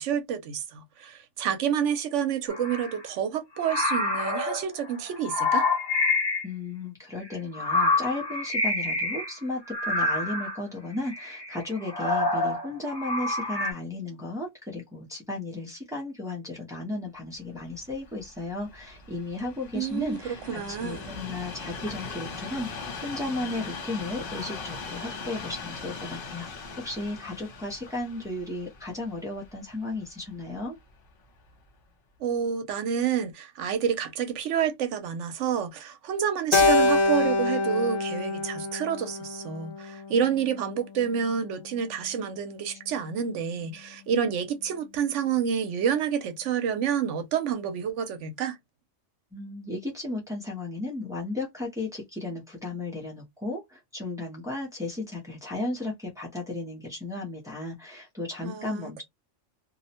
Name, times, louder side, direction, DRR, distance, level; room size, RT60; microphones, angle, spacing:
voice 1, 0.0-5.7 19.7-21.1 32.2-48.6 58.4-58.9, right 8 dB, 75° right, 0.9 m, -29 dB
sound 1, 2.5-3.0 3.6-6.5 7.3-9.3 9.7-10.6 11.1-13.7, left 2 dB, 20° left, 0.9 m, -27 dB
voice 2, 6.4-26.5 26.8-30.8 49.3-59.0, left 2 dB, 5° right, 0.3 m, -34 dB
Train, 17.6-30.8 31.5-31.6, left 4 dB, 50° left, 0.8 m, -40 dB
Keyboard (musical), 36.5-40.9, left 3 dB, 85° left, 1.0 m, -26 dB
2.6 x 2.0 x 2.7 m
omnidirectional pair, 1.3 m